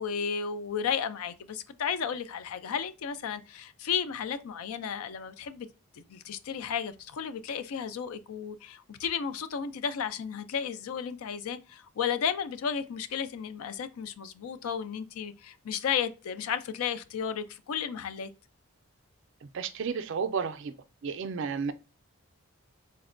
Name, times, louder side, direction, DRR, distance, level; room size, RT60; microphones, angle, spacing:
voice 1, 0.0-5.7 5.9-18.3, left 7 dB, 80° left, 0.4 m, -33 dB
voice 2, 19.4-20.7 21.0-21.7, right 6 dB, 60° right, 0.4 m, -32 dB
4.0 x 2.1 x 2.4 m
head